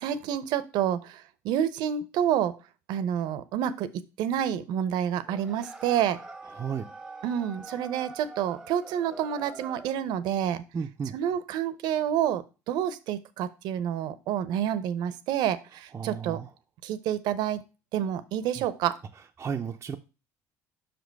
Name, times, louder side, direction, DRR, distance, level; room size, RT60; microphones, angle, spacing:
voice 1, 0.0-2.5 2.9-6.2 7.2-10.6 11.1-16.4 16.8-17.6 17.9-19.0, right 10 dB, 70° right, 15 dB, 0.8 m, -28 dB
sound 1, 5.2-10.1, right 2 dB, 5° right, 1.1 m, -45 dB
voice 2, 6.5-6.9 10.7-11.2 15.9-16.5 18.6-18.7 19.4-20.0, right 6 dB, 30° right, 2 dB, 0.6 m, -33 dB
6.0 x 5.2 x 4.6 m, 0.30 s
supercardioid pair, 90°, 8 cm